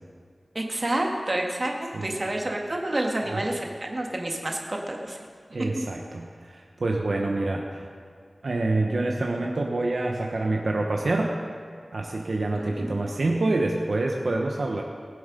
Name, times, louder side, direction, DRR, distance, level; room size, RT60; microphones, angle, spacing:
voice 1, 0.6-1.7 2.0-5.2 12.5-12.9, right 1 dB, 40° right, 1 dB, 1.9 m, -29 dB
voice 2, 5.5-7.9 8.4-11.3 11.9-14.8, right 2 dB, 70° right, 0 dB, 1.1 m, -27 dB
20.0 x 7.9 x 5.3 m, 2.1 s
wide cardioid pair, 75°, 0 cm